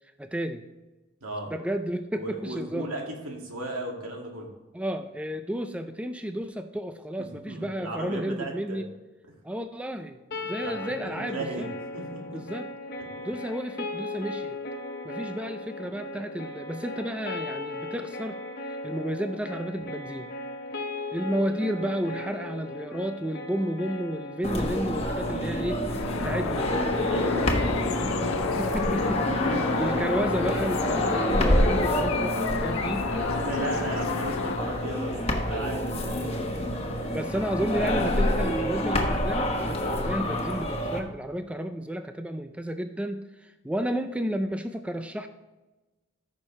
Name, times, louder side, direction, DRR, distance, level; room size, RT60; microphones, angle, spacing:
voice 1, 0.2-0.6 1.5-2.9 4.7-8.9 9.4-11.7 12.3-12.7 13.2-14.6 15.0-18.4 18.7-20.3 21.1-26.8 28.6-33.0 33.5-34.0 37.1-45.3, equal, 5° right, 8 dB, 0.3 m, -32 dB
voice 2, 1.2-1.5 2.1-4.5 7.2-8.8 10.3-11.7 11.9-12.4 13.0-13.1 27.1-28.5 29.3-29.9 33.1-35.2 35.5-36.5, right 1 dB, 85° right, 0 dB, 2.2 m, -36 dB
sound 1, 10.3-26.3, left 2 dB, 45° left, 1.1 m, -37 dB
sound 2, 24.4-41.0, left 1 dB, 30° left, 1.2 m, -27 dB
sound 3, 25.8-34.6, left 6 dB, 70° left, 0.5 m, -32 dB
14.5 x 6.3 x 3.2 m, 1.1 s
head